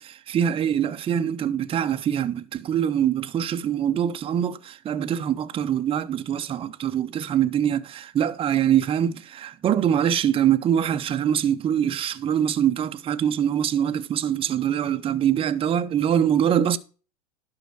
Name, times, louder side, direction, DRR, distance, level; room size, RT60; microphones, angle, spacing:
voice 1, 0.0-16.8, right 9 dB, 25° right, 0.8 m, -24 dB
11.5 x 5.7 x 4.7 m
hypercardioid pair, 105°, 21 cm